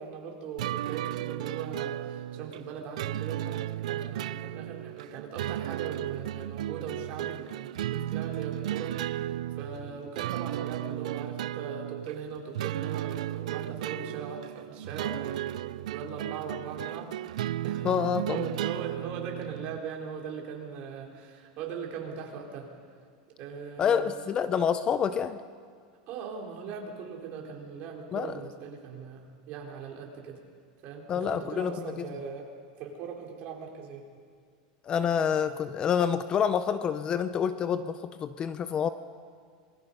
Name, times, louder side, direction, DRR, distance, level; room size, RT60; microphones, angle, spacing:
voice 1, 0.0-15.6 15.9-17.1 17.6-17.9 18.3-22.7 23.4-24.3 26.1-30.4 30.8-32.5 32.8-34.0, right 6 dB, 40° right, 0 dB, 4.0 m, -40 dB
sound 1, 0.6-19.8, right 13 dB, 90° right, 0.5 m, -34 dB
voice 2, 17.8-18.4 23.8-25.4 28.1-28.3 31.1-32.1 34.8-38.9, left 7 dB, 25° left, 12 dB, 0.6 m, -27 dB
27.5 x 20.5 x 5.4 m, 2.1 s
supercardioid pair, 155°, 4 cm